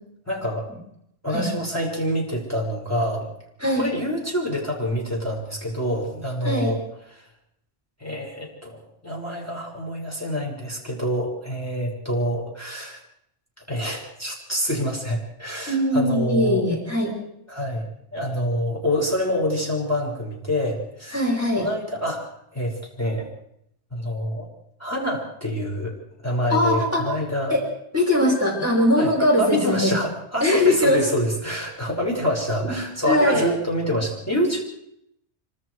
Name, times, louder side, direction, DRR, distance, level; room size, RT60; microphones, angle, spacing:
voice 1, 0.3-0.7 1.2-3.3 3.7-6.8 7.1-7.3 8.0-13.0 13.7-16.6 17.5-21.2 21.6-23.3 23.9-24.5 24.8-27.6 29.0-34.6, equal, 15° left, -2 dB, 5.9 m, -26 dB
voice 2, 15.7-17.1 21.1-21.7 26.5-27.1 27.5-27.6 27.9-29.9 30.4-31.0 32.7-33.5, left 1 dB, 10° right, 0 dB, 5.5 m, -21 dB
26.5 x 24.5 x 4.8 m, 0.76 s
omnidirectional pair, 1.2 m